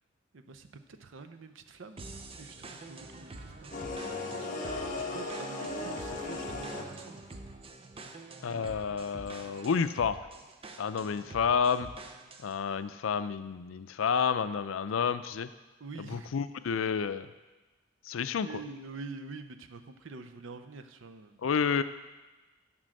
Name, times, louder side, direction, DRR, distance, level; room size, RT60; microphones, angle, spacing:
voice 1, 0.3-7.2 15.8-16.4 18.4-21.4, right 4 dB, 75° right, 8 dB, 0.6 m, -47 dB
sound 1, 2.0-12.6, right 2 dB, 30° right, 0.6 m, -47 dB
sound 2, 3.7-7.2, left 2 dB, 45° left, 1.1 m, -36 dB
voice 2, 8.4-10.2 10.8-11.9 12.4-15.5 16.0-17.3 18.1-18.5 21.4-21.8, left 6 dB, 90° left, 13 dB, 0.4 m, -30 dB
7.5 x 6.1 x 6.4 m, 1.2 s
head